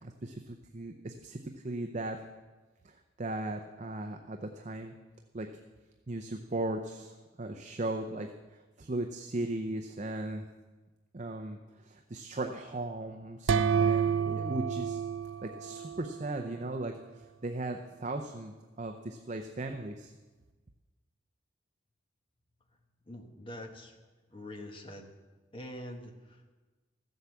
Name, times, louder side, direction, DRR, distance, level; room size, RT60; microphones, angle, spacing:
voice 1, 0.0-1.4 1.6-2.2 2.8-4.9 5.3-5.5 6.1-8.3 8.8-10.4 11.1-15.0 15.4-16.9 17.4-20.1, right 2 dB, 40° right, 5 dB, 0.6 m, -37 dB
Blancos Hotel tea-tray, 13.5-16.2, right 6 dB, 85° right, 0.5 m, -29 dB
voice 2, 23.1-23.9 24.3-25.1 25.5-26.5, left 1 dB, 25° left, 4 dB, 1.2 m, -44 dB
14.5 x 7.9 x 7.1 m, 1.3 s
head